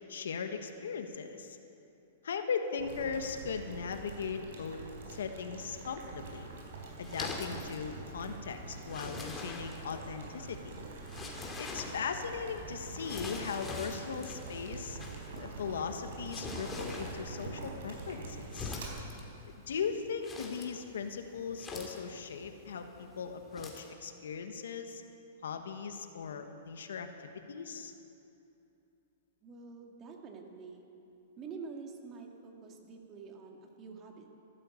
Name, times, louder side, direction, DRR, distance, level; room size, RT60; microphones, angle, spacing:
voice 1, 0.1-1.6 2.2-4.8 5.1-6.5 7.0-10.8 11.6-15.0 15.4-18.7 19.7-25.0 25.4-27.1 27.5-27.9, left 6 dB, 85° left, 6 dB, 1.3 m, -38 dB
Boiling, 2.8-18.9, right 3 dB, 75° right, 4.3 m, -45 dB
sound 1, 6.2-23.9, left 3 dB, 15° left, 2.5 m, -46 dB
voice 2, 29.4-30.8 31.4-34.3, right 4 dB, 30° right, 2 dB, 2.1 m, -47 dB
13.5 x 12.5 x 8.3 m, 2.8 s
hypercardioid pair, 140°, 0 cm